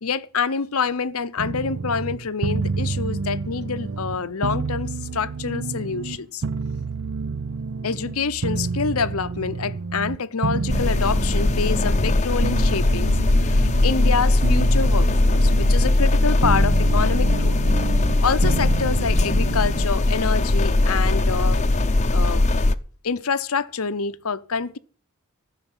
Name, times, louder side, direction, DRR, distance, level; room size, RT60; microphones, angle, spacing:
voice 1, 0.0-6.4 7.8-17.6 18.2-21.7 22.1-22.5 23.0-24.8, left 5 dB, 90° left, 0.8 m, -26 dB
sound 1, 1.4-19.9, right 4 dB, 65° right, 0.5 m, -29 dB
sound 2, 10.7-22.7, left 2 dB, 30° left, 0.6 m, -19 dB
14.5 x 6.6 x 8.9 m
head